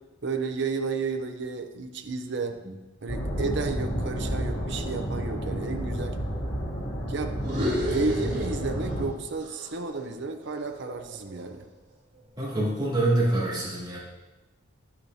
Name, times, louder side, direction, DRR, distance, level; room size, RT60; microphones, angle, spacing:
voice 1, 0.2-2.6 3.0-6.2 7.1-7.3 7.9-11.6, right 4 dB, 55° right, 6 dB, 0.6 m, -32 dB
sound 1, 3.1-9.0, equal, 90° left, 2.4 m, -31 dB
sound 2, 7.4-9.1 9.4-11.6, equal, 35° right, 1.9 m, -33 dB
voice 2, 12.4-14.0, right 2 dB, 20° right, -8 dB, 2.7 m, -25 dB
10.0 x 8.5 x 2.7 m, 1.1 s
head